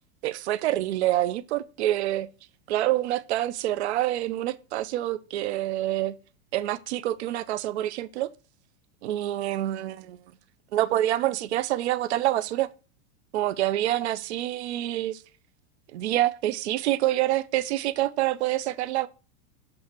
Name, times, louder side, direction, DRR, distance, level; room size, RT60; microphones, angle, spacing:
voice 1, 0.2-2.3 2.7-6.2 6.5-8.3 9.0-10.2 10.7-12.7 13.3-15.2 15.9-19.1, right 14 dB, 80° right, 0.7 m, -26 dB
7.6 x 3.2 x 5.8 m
supercardioid pair, 180°, 33 cm